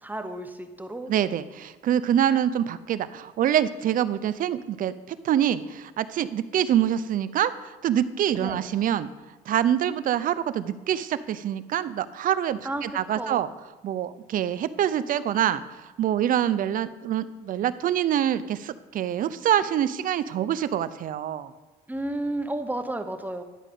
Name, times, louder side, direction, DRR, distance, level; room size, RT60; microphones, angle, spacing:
voice 1, 0.0-1.1 8.4-8.6 12.6-13.4 21.9-23.4, right 1 dB, 10° right, 8 dB, 0.8 m, -32 dB
voice 2, 1.1-9.1 9.5-13.5 13.8-15.6 16.0-21.5, right 10 dB, 55° right, 14 dB, 0.6 m, -25 dB
11.0 x 5.1 x 8.4 m, 1.2 s
cardioid pair, 110°, 17 cm